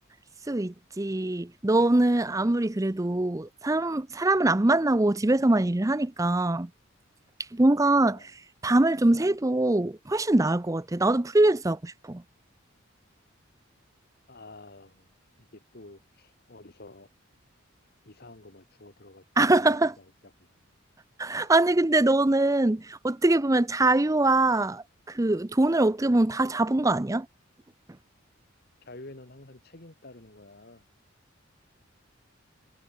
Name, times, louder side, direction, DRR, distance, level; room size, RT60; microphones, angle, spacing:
voice 1, 0.5-6.7 7.5-8.3 8.6-12.2 19.4-19.9 21.2-27.3, right 2 dB, 15° right, 0.6 m, -23 dB
voice 2, 14.3-15.1 15.4-17.1 18.0-19.2 19.6-20.6 21.3-21.5 28.8-30.8, left 2 dB, 50° left, 2.2 m, -49 dB
head